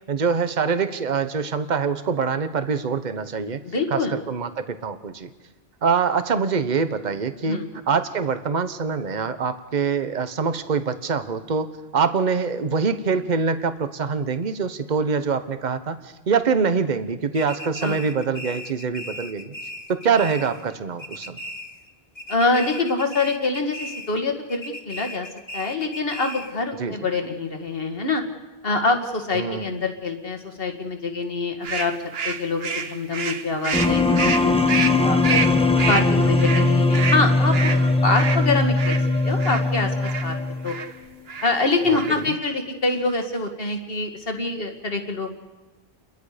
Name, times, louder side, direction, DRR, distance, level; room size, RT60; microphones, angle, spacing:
voice 1, 0.1-3.6 3.9-5.3 5.8-7.6 7.9-19.5 19.9-21.4 26.8-27.1 29.3-29.8 41.9-42.4, right 5 dB, 45° right, 10 dB, 1.1 m, -24 dB
voice 2, 3.6-4.2 7.4-7.7 17.8-18.0 22.3-25.3 25.5-28.2 28.6-31.9 32.2-34.6 34.9-35.4 35.9-39.0 39.2-40.4 40.6-40.8 41.4-45.3, left 3 dB, 65° left, 4 dB, 2.1 m, -25 dB
sound 1, 17.3-20.7 21.0-21.9 22.2-24.2 24.5-26.6, left 1 dB, 45° left, 1.8 m, -37 dB
sound 2, 31.6-39.6 40.0-40.3 40.7-40.9 41.3-41.6 41.9-42.3, right 5 dB, 75° right, 1.2 m, -28 dB
sound 3, 33.7-40.8, left 3 dB, 5° left, 1.0 m, -20 dB
30.0 x 22.0 x 5.0 m, 1.2 s
omnidirectional pair, 1.0 m